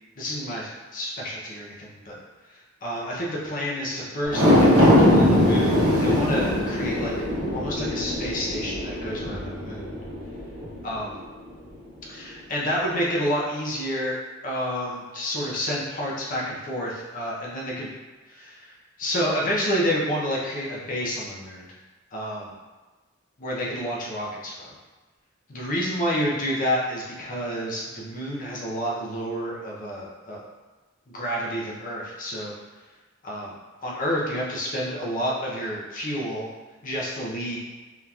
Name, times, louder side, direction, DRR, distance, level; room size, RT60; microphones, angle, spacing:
voice 1, 0.2-2.2 2.5-7.1 7.5-9.9 10.8-11.1 12.1-14.2 14.4-17.9 18.3-21.6 22.1-22.5 23.4-24.7 25.5-30.4 31.1-32.5 33.2-33.5 33.8-36.5 36.8-37.6, equal, 40° left, -4 dB, 0.6 m, -29 dB
sound 1, 4.2-10.8 11.2-11.3, left 1 dB, 60° right, 0.9 m, -21 dB
3.7 x 2.8 x 2.3 m, 1.3 s
head